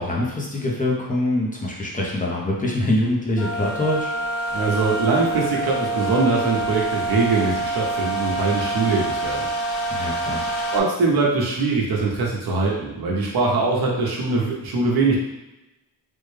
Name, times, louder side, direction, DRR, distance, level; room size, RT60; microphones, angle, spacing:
voice 1, 0.0-4.1 9.9-10.4, left 1 dB, 20° left, -3 dB, 0.6 m, -24 dB
sound 1, 3.4-10.8, right 2 dB, 55° left, 0.7 m, -26 dB
voice 2, 4.5-9.5 10.7-15.2, right 3 dB, 85° right, -3 dB, 0.9 m, -22 dB
3.5 x 2.2 x 3.2 m, 0.98 s
wide cardioid pair, 145°, 36 cm